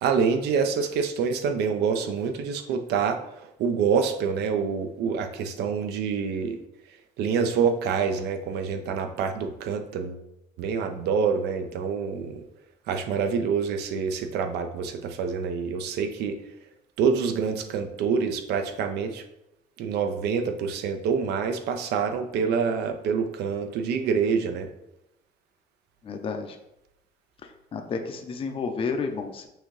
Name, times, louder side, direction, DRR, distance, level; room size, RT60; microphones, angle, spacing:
voice 1, 0.0-3.2 3.6-6.6 7.2-10.2 10.6-12.4 12.9-16.4 17.0-19.2 19.8-24.7, right 6 dB, 75° right, 7 dB, 0.6 m, -26 dB
voice 2, 26.0-26.6 27.7-29.5, left 5 dB, 35° left, 5 dB, 0.5 m, -31 dB
5.7 x 2.7 x 3.1 m, 0.85 s
cardioid pair, 110°, 17 cm